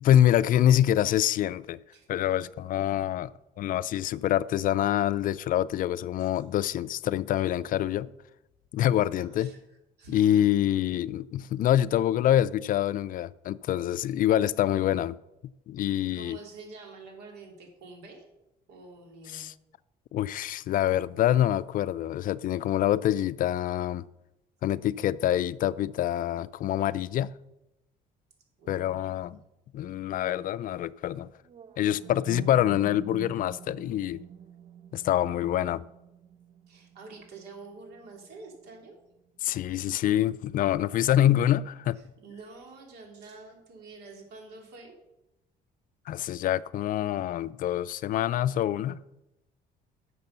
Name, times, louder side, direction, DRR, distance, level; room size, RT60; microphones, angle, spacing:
voice 1, 0.0-1.8 2.1-3.3 3.6-8.1 8.7-9.5 10.1-15.2 15.7-16.4 19.3-19.5 20.1-24.0 24.6-27.3 28.7-29.4 29.7-31.3 31.8-34.2 34.9-35.8 39.4-42.0 46.1-49.0, left 12 dB, 55° left, 0.4 m, -26 dB
voice 2, 9.2-10.4 16.1-18.3 18.7-19.5 28.6-29.5 36.7-39.0 41.1-41.2 42.0-44.9, right 3 dB, 75° right, 2.8 m, -48 dB
sound 1, 31.4-39.5, right 9 dB, 40° right, 0.4 m, -48 dB
10.5 x 6.8 x 5.6 m
cardioid pair, 110°, 17 cm